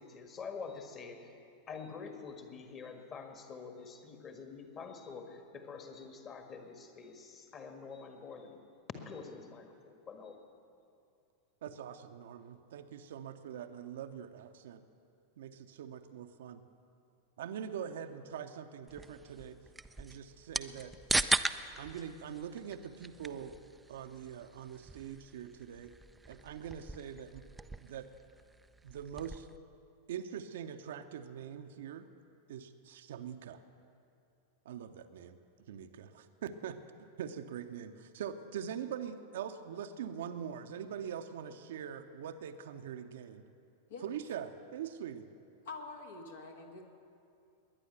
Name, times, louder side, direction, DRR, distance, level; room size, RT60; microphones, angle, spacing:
voice 1, 0.0-1.4 1.7-8.6 9.1-10.4, left 5 dB, 30° left, 5 dB, 1.7 m, -47 dB
voice 2, 11.6-14.8 15.4-16.6 17.4-19.6 20.0-20.9 21.8-23.6 23.9-25.9 26.3-27.4 27.8-28.1 28.8-29.5 30.1-32.1 32.5-33.6 34.6-35.4 35.7-43.5 44.0-45.2, right 8 dB, 60° right, 8 dB, 0.7 m, -43 dB
sound 1, 18.9-29.6, right 2 dB, 5° right, 0.4 m, -39 dB
voice 3, 45.7-46.9, left 3 dB, 60° left, 4 dB, 1.6 m, -45 dB
21.0 x 9.9 x 6.8 m, 2.6 s
figure-of-eight pair, 90°, 0 cm